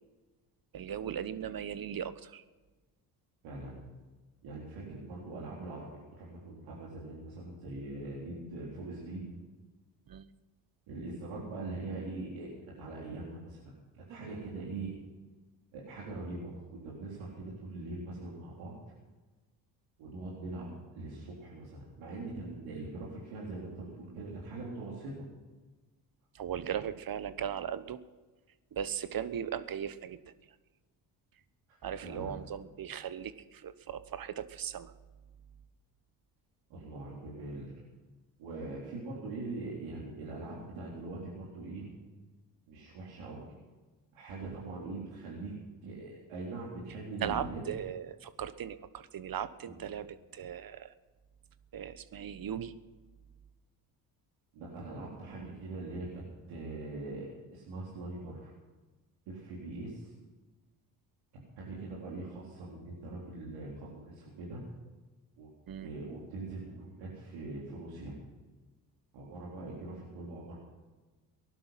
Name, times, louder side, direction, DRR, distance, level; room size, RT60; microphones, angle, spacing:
voice 1, 0.7-2.4 10.1-10.2 26.3-28.0 28.7-30.2 31.8-34.9 47.2-50.9 51.7-52.7 65.7-65.9, right 9 dB, 45° right, 14 dB, 1.2 m, -38 dB
voice 2, 3.4-3.7 4.4-9.3 10.9-12.5 12.8-13.6 13.9-14.9 15.7-18.8 20.0-25.2 31.7-32.3 36.7-37.7 38.4-41.9 42.7-43.5 44.1-45.5 45.8-47.6 49.7-49.8 54.5-58.5 59.3-60.1 61.6-64.6 65.4-65.5 65.8-68.1 69.1-70.6, right 2 dB, 70° right, -5 dB, 3.9 m, -42 dB
19.5 x 11.5 x 5.9 m, 1.3 s
hypercardioid pair, 55°, 49 cm